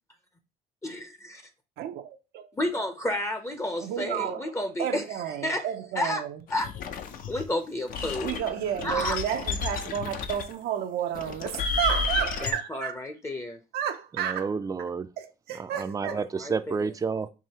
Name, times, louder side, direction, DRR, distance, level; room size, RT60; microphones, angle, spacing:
voice 1, 0.8-1.4 2.5-5.0 5.4-5.7 5.9-6.2 6.5-6.7 7.3-8.5 8.8-9.2 12.4-13.6 16.1-16.5, left 1 dB, 15° left, 0.6 m, -31 dB
voice 2, 1.8-2.5 3.8-4.5 4.8-6.4 8.2-13.0 13.7-14.4 15.5-16.2, right 10 dB, 70° right, 0.6 m, -31 dB
sound 1, 6.5-7.4 7.9-10.5 11.1-12.5, left 6 dB, 55° left, 0.6 m, -32 dB
voice 3, 14.1-15.1 15.5-17.3, right 5 dB, 20° right, 0.4 m, -30 dB
4.8 x 2.7 x 2.8 m
cardioid pair, 110°, 17 cm